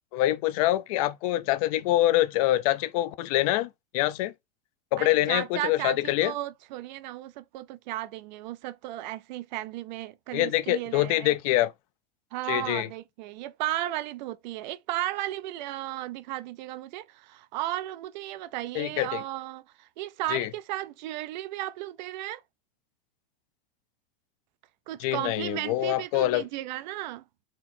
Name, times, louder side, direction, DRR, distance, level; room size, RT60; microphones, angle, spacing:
voice 1, 0.1-3.7 3.9-4.3 4.9-6.3 10.3-11.7 12.5-12.9 18.7-19.2 20.3-20.5 25.0-26.4, left 15 dB, 40° left, 0.4 m, -25 dB
voice 2, 5.0-11.4 12.3-22.4 24.9-27.2, right 15 dB, 50° right, 0.4 m, -35 dB
4.4 x 2.9 x 4.2 m
supercardioid pair, 165°, 29 cm